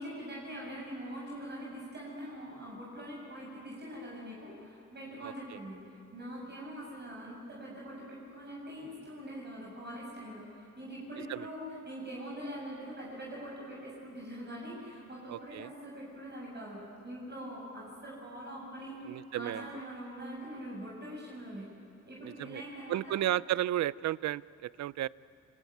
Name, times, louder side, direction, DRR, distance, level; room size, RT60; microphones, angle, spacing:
voice 1, 0.0-19.0 19.3-21.7 22.0-23.2, equal, 35° right, -4 dB, 7.5 m, -43 dB
voice 2, 15.3-15.7 19.1-19.7 22.2-22.6 22.9-25.1, right 13 dB, 65° right, 20 dB, 0.6 m, -33 dB
29.0 x 22.0 x 9.4 m, 2.6 s
cardioid pair, 90°, 30 cm